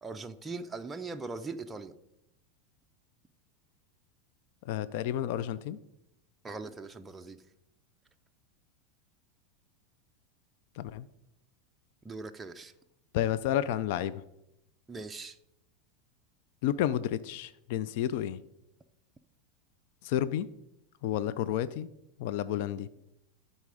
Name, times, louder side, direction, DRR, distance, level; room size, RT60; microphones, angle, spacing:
voice 1, 0.0-1.9 6.4-7.4 12.0-12.7 14.9-15.4, right 3 dB, 10° right, 5 dB, 0.4 m, -40 dB
voice 2, 4.7-5.8 10.8-11.1 13.1-14.2 16.6-18.4 20.0-20.5 21.0-21.9 22.2-22.9, left 11 dB, 65° left, 16 dB, 0.4 m, -31 dB
12.0 x 4.1 x 4.9 m, 0.83 s
supercardioid pair, 135°, 0 cm